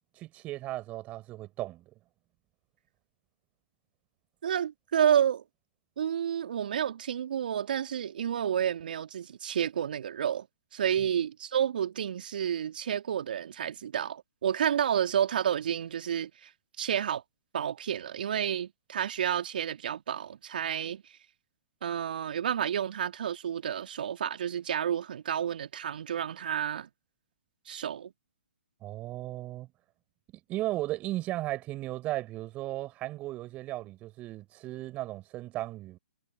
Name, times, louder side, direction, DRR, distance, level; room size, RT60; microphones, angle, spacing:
voice 1, 0.2-1.8 28.8-29.7 30.5-36.0, right 16 dB, 25° right, 6.1 m, -36 dB
voice 2, 4.4-5.4 6.0-10.5 10.7-16.5 16.8-17.2 17.5-21.2 21.8-26.9 27.7-28.1, right 9 dB, 55° right, 3.6 m, -30 dB
figure-of-eight pair, 130°, 6 cm